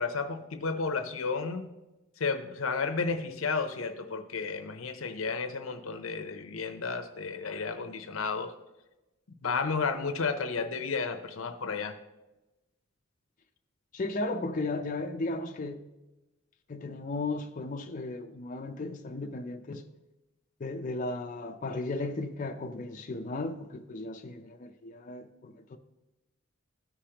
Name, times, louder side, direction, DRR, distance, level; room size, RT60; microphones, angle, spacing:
voice 1, 0.0-1.7 2.2-8.5 9.4-11.9, left 4 dB, 85° left, 0.7 m, -32 dB
voice 2, 13.9-15.9 16.7-19.8 20.6-25.8, left 2 dB, 40° left, 0.5 m, -35 dB
13.5 x 5.0 x 2.9 m
head